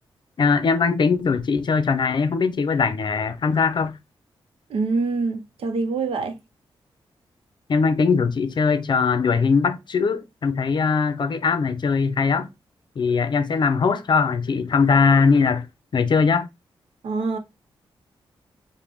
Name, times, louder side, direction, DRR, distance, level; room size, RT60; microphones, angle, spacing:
voice 1, 0.4-4.0 7.7-12.5 13.0-15.7 15.9-16.5, left 5 dB, 50° left, 0.5 m, -20 dB
voice 2, 4.7-6.4 17.0-17.4, right 4 dB, 80° right, 0.7 m, -25 dB
5.1 x 2.2 x 2.9 m
cardioid pair, 80°, 10 cm